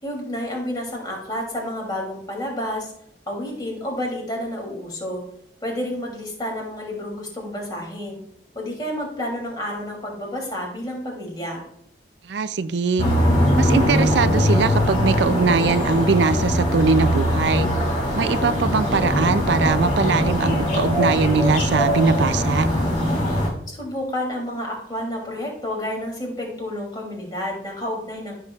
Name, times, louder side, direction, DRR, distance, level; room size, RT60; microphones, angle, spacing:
voice 1, 0.0-2.9 3.3-5.2 5.6-8.2 8.5-11.7 23.7-28.4, left 1 dB, 25° left, -1 dB, 2.9 m, -30 dB
voice 2, 12.2-13.1 13.5-17.7 18.1-22.7, right 4 dB, 80° right, 12 dB, 0.4 m, -21 dB
sound 1, 13.0-23.5, equal, 40° left, 2.7 m, -21 dB
13.5 x 6.7 x 2.4 m, 0.72 s
head